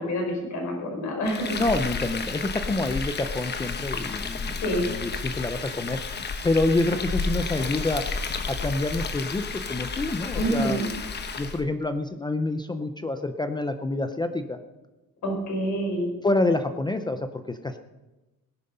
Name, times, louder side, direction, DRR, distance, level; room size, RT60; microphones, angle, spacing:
voice 1, 0.0-1.6 4.5-4.9 10.3-10.9 15.2-16.1, equal, 50° left, 1 dB, 5.4 m, -27 dB
Frying (food), 1.3-11.6, left 4 dB, 30° left, 1.0 m, -32 dB
voice 2, 1.6-8.0 8.5-10.8 11.4-14.6 16.2-17.8, left 2 dB, 15° left, 8 dB, 0.5 m, -27 dB
18.5 x 11.0 x 5.5 m, 1.1 s
cardioid pair, 170°, 36 cm